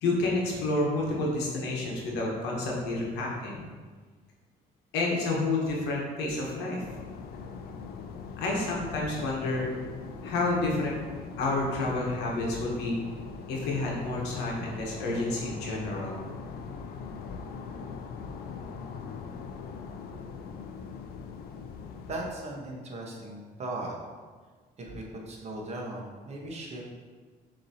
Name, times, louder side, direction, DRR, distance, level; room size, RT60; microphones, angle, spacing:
voice 1, 0.0-3.6 4.9-6.8 8.4-9.7 10.2-11.0 11.4-13.0 13.5-16.3, left 2 dB, 90° left, -3 dB, 1.2 m, -29 dB
sound 1, 6.8-22.3, left 5 dB, 65° left, 0.5 m, -41 dB
voice 2, 22.1-24.0 24.8-26.8, right 2 dB, 40° right, -1 dB, 1.1 m, -38 dB
6.4 x 3.0 x 2.8 m, 1.5 s
cardioid pair, 110°, 17 cm